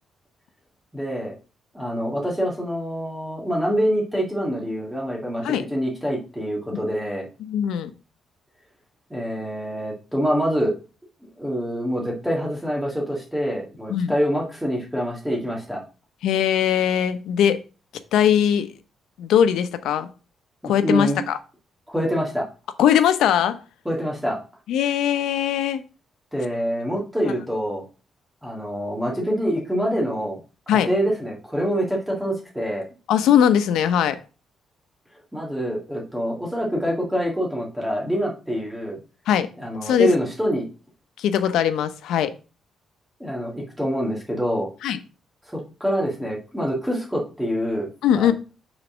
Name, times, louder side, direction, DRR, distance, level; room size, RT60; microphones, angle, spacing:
voice 1, 0.9-1.3 1.7-7.3 9.1-10.7 11.4-15.8 20.6-21.2 21.9-22.5 23.9-24.4 26.3-27.8 28.4-30.4 30.7-32.9 35.3-39.0 39.6-40.7 43.2-44.7 45.5-47.9 48.1-48.3, equal, 5° right, -2 dB, 2.1 m, -25 dB
voice 2, 7.4-7.9 13.9-14.1 16.2-17.6 18.1-18.7 19.2-20.1 20.6-21.4 22.8-23.6 24.7-25.8 30.7-30.9 33.1-34.2 39.3-39.5 39.8-40.1 41.2-42.3 44.8-45.0 48.0-48.3, left 9 dB, 90° left, 12 dB, 0.8 m, -20 dB
6.5 x 4.1 x 6.3 m, 0.34 s
cardioid pair, 145°, 0 cm